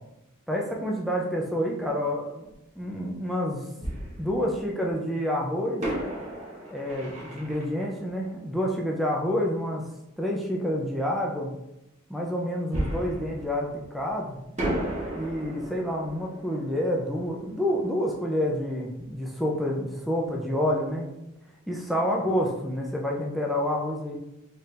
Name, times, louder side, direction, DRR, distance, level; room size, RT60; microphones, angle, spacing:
voice 1, 0.5-2.5 2.8-3.7 4.2-5.8 6.7-9.8 10.2-11.5 12.1-14.4 15.2-21.1 21.7-24.2, equal, ahead, -1 dB, 0.4 m, -28 dB
Fireworks, 2.5-2.6 3.8-4.9 5.8-9.3 12.7-14.2 14.6-19.1 19.4-19.5 20.0-20.2, right 1 dB, 35° right, 1.1 m, -35 dB
4.2 x 3.7 x 2.5 m, 0.88 s
head